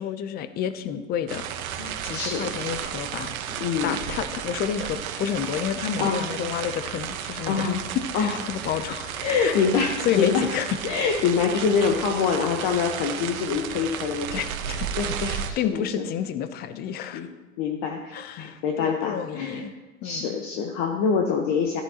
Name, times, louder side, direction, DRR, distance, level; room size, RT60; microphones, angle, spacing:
voice 1, 0.0-1.4 2.0-3.3 3.8-7.7 8.2-10.8 14.3-17.3 18.1-19.7 20.0-20.4, left 9 dB, 25° left, 12 dB, 0.5 m, -30 dB
sound 1, 1.3-15.5, right 9 dB, 80° right, 1.2 m, -33 dB
voice 2, 1.8-2.5 3.6-4.0 6.0-6.2 7.5-7.9 8.1-8.4 8.7-8.8 9.2-10.4 10.8-14.4 15.0-16.1 17.1-17.3 17.6-19.7 20.0-21.8, left 6 dB, 40° left, 2 dB, 1.2 m, -25 dB
13.5 x 10.0 x 2.9 m, 1.1 s
supercardioid pair, 135°, 41 cm